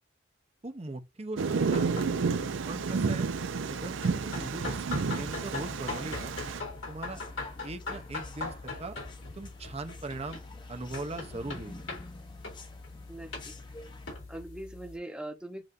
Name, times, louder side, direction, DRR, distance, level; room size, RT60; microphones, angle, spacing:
voice 1, 0.6-2.0 2.7-3.3 3.7-4.8 5.0-6.3 6.9-7.2 7.6-10.4 10.7-11.9, right 2 dB, 35° right, 0.7 m, -40 dB
Thunder, 1.4-6.6, right 5 dB, 80° right, 0.5 m, -31 dB
sound 1, 1.6-15.0, left 3 dB, 85° left, 2.7 m, -41 dB
sound 2, 6.3-14.1, left 2 dB, 25° left, 0.7 m, -50 dB
voice 2, 13.1-13.5 14.3-15.6, right 1 dB, 5° right, 0.9 m, -42 dB
7.6 x 2.6 x 2.5 m
head